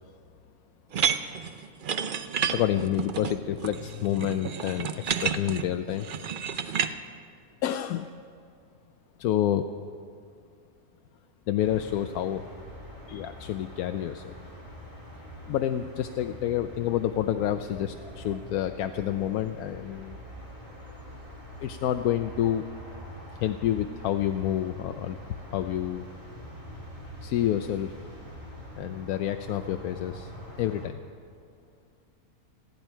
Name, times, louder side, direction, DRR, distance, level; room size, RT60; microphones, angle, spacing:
sound 1, 0.9-6.9, right 7 dB, 50° right, 0.6 m, -30 dB
voice 1, 2.5-6.1 7.6-8.1 9.2-9.6 11.5-12.5 13.1-14.4 15.5-20.2 21.6-22.7 23.4-25.2 25.5-26.0 27.2-27.9 28.8-30.3 30.6-31.0, left 11 dB, 80° left, 8 dB, 1.1 m, -28 dB
sound 2, 11.6-30.9, equal, 20° right, 2.9 m, -44 dB
30.0 x 11.0 x 4.5 m, 2.4 s
omnidirectional pair, 1.5 m